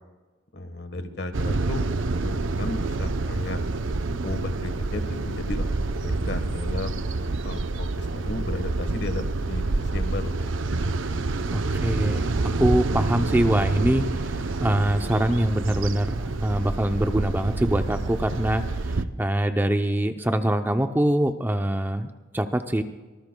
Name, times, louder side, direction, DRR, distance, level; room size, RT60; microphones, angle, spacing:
voice 1, 0.5-1.9 2.2-3.6 4.2-7.1 7.4-10.4, left 2 dB, 60° left, 8 dB, 1.4 m, -34 dB
sound 1, 1.3-19.1, right 3 dB, 80° right, 0.7 m, -27 dB
voice 2, 11.5-18.6 19.2-22.1 22.3-22.8, right 1 dB, 10° right, 7 dB, 0.6 m, -24 dB
24.0 x 19.0 x 2.3 m, 1.3 s
head